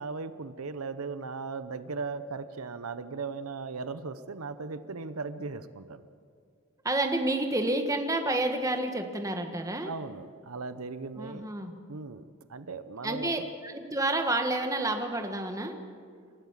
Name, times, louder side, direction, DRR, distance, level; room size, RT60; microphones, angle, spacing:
voice 1, 0.0-6.1 9.8-11.5 11.9-12.2 12.5-13.4, right 4 dB, 85° right, 12 dB, 0.8 m, -37 dB
voice 2, 6.8-9.9 11.2-11.8 13.0-15.7, right 2 dB, 15° right, 5 dB, 1.5 m, -29 dB
27.5 x 13.5 x 7.4 m, 2.2 s
head